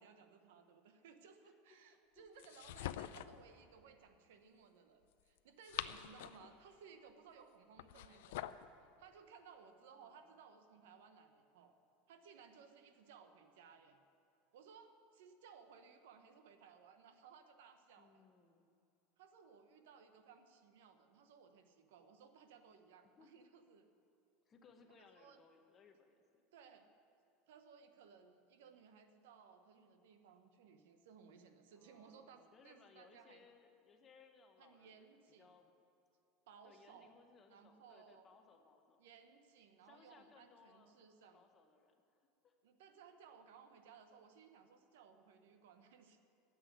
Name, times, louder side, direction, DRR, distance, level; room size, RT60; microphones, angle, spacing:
voice 1, 0.0-8.6 9.0-11.8 12.1-14.0 14.5-18.2 19.2-23.9 24.9-25.4 26.5-26.9 27.5-33.5 34.6-35.5 36.5-37.1 37.5-38.3 39.0-41.4 42.6-46.2, right 6 dB, 90° right, 8 dB, 1.0 m, -61 dB
voice 2, 1.4-2.3 9.9-10.3 18.0-18.7 23.2-23.3 24.5-26.4 31.7-35.7 36.6-39.1 39.8-41.0 41.3-42.5, left 5 dB, 20° left, 5 dB, 0.8 m, -66 dB
sound 1, 2.4-3.4 5.4-6.5 7.8-8.7, left 13 dB, 75° left, 0.4 m, -45 dB
10.0 x 7.7 x 9.3 m, 2.8 s
supercardioid pair, 170°, 0 cm